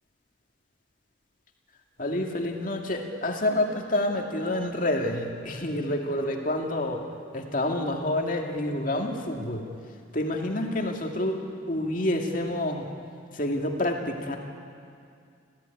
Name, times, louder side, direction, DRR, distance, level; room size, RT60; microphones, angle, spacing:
voice 1, 2.0-7.0 7.3-9.6 10.1-12.8 13.3-14.4, left 1 dB, 45° left, 2 dB, 2.4 m, -28 dB
29.0 x 14.5 x 9.4 m, 2.3 s
head